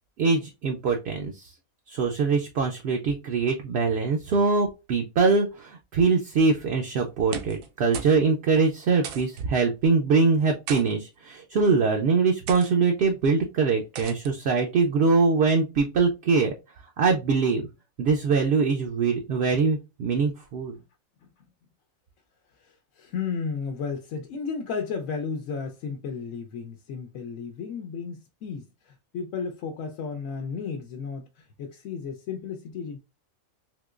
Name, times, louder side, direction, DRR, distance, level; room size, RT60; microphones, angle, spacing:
voice 1, 0.2-1.5 1.9-16.5 17.0-17.6 18.0-20.8, right 4 dB, 65° right, 0.7 m, -23 dB
sound 1, 7.1-7.7 7.9-8.2 8.5-8.6 9.0-9.4 10.4-10.8 11.6-11.8 12.5-12.7 14.0-14.3, right 7 dB, 80° right, 1.0 m, -37 dB
voice 2, 22.6-33.0, left 5 dB, 75° left, 0.9 m, -34 dB
3.6 x 2.8 x 2.4 m
omnidirectional pair, 1.5 m